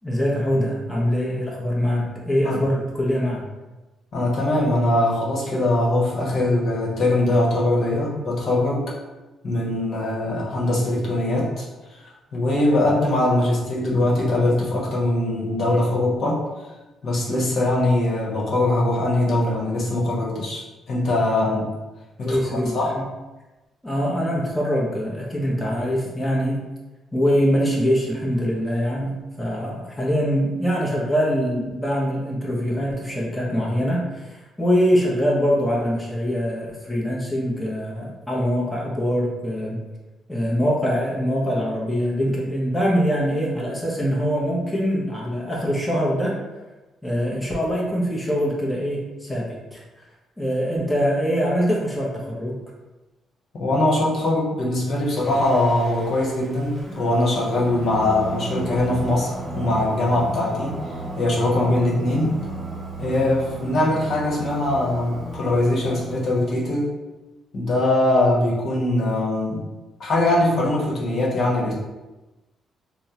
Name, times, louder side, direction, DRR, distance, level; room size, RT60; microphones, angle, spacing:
voice 1, 0.0-3.4 22.2-23.1 23.8-26.6 27.1-39.8 40.3-46.4 47.0-49.8 50.4-52.6, equal, 5° left, -4 dB, 0.7 m, -23 dB
voice 2, 4.1-9.0 9.4-11.6 11.9-16.7 17.0-21.7 22.2-22.9 53.5-60.7 61.2-62.4 63.0-66.9 67.5-69.7 70.0-71.7, left 1 dB, 60° left, -4 dB, 0.9 m, -22 dB
Singing, 55.1-66.4, right 1 dB, 30° right, 1.1 m, -34 dB
3.5 x 2.0 x 2.8 m, 1.1 s
cardioid pair, 90°, 0 cm